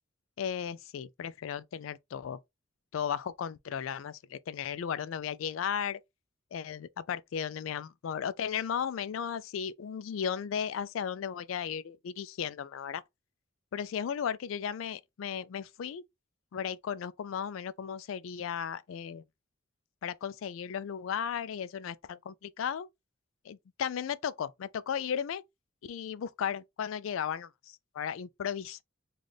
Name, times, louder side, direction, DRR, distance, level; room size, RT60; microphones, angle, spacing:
voice 1, 0.4-2.4 2.9-6.0 6.5-13.0 13.7-16.0 16.5-19.2 20.0-22.9 23.4-25.4 25.8-28.8, left 8 dB, 85° left, 0.3 m, -35 dB
3.3 x 2.4 x 4.0 m
head